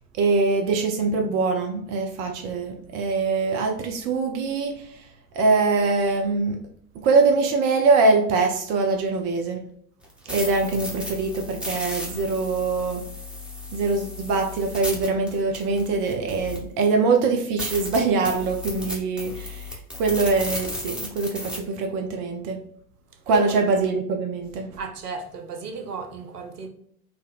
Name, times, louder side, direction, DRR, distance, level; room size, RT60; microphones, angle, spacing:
voice 1, 0.2-5.0 5.3-6.6 7.0-9.6 10.3-13.0 13.7-22.6 23.3-24.7, right 4 dB, 45° right, 0.6 m, -23 dB
sound 1, 10.0-16.8 17.2-17.3 17.6-21.6, left 1 dB, ahead, 0.9 m, -34 dB
voice 2, 24.8-26.7, right 3 dB, 85° right, 0.6 m, -34 dB
3.9 x 2.1 x 2.4 m
figure-of-eight pair, 70°, 45 cm